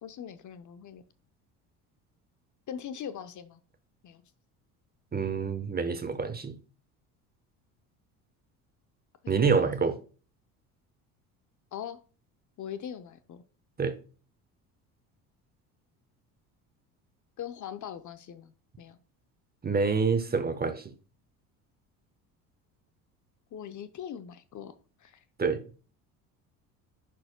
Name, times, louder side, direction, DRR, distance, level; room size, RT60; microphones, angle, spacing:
voice 1, 0.0-1.0 2.7-3.6 4.0-4.2 9.2-9.9 11.7-12.0 12.6-13.4 17.4-19.0 23.5-24.7 25.0-25.2, left 9 dB, 45° left, 0.8 m, -41 dB
voice 2, 5.1-6.6 9.3-10.0 13.8-13.9 19.6-20.9 25.4-25.6, right 5 dB, 20° right, 1.0 m, -27 dB
10.5 x 4.6 x 2.2 m
hypercardioid pair, 70°, 43 cm